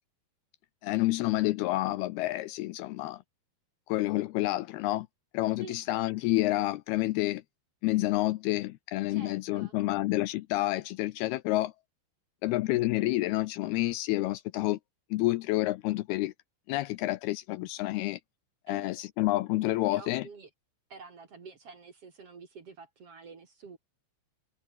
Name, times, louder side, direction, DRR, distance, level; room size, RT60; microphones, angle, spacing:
voice 1, 0.8-3.2 3.9-5.1 5.3-7.4 7.8-11.7 12.4-14.8 15.1-16.3 16.7-18.2 18.7-20.3, left 18 dB, 80° left, 2.5 m, -29 dB
voice 2, 9.1-9.7 18.7-18.9 19.9-20.5 20.9-23.8, right 5 dB, 40° right, 2.7 m, -48 dB
omnidirectional pair, 4.9 m